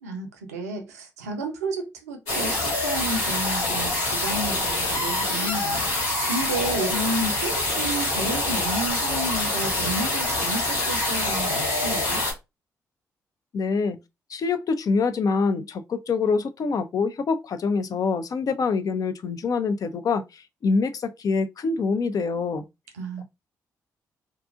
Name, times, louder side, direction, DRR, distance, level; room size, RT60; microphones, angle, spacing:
voice 1, 0.0-5.9 6.3-12.2 22.9-23.2, right 2 dB, 90° right, 0.5 m, -31 dB
sound 1, 2.3-12.3, left 2 dB, 80° left, 1.2 m, -25 dB
voice 2, 13.5-14.0 14.3-22.6, left 4 dB, 50° left, 0.4 m, -25 dB
2.7 x 2.4 x 2.4 m
hypercardioid pair, 40°, 8 cm